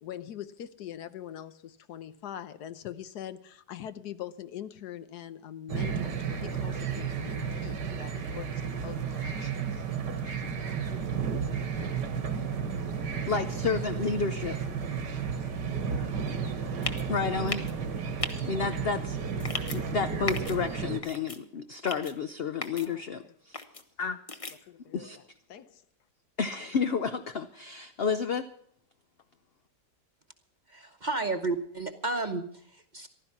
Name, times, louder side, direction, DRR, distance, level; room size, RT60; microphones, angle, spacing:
voice 1, 0.0-9.8 22.8-23.3 24.7-25.2 25.5-25.8, left 10 dB, 75° left, 1.3 m, -43 dB
sound 1, 5.7-21.0, right 6 dB, 80° right, 2.1 m, -33 dB
voice 2, 13.3-14.6 17.1-17.7 18.5-19.2 19.7-23.6 24.0-24.2 24.9-25.2 26.4-28.5, left 5 dB, 60° left, 0.6 m, -31 dB
sound 2, 16.8-17.0 17.5-17.7 18.2-18.3 19.4-19.8 20.3-20.6 21.0-21.4 21.9-22.1 22.6-22.9 23.5-23.8 24.3-24.5, left 3 dB, 25° left, 0.8 m, -35 dB
voice 3, 30.7-33.1, right 3 dB, 30° right, 1.0 m, -32 dB
15.5 x 12.0 x 5.8 m
omnidirectional pair, 1.8 m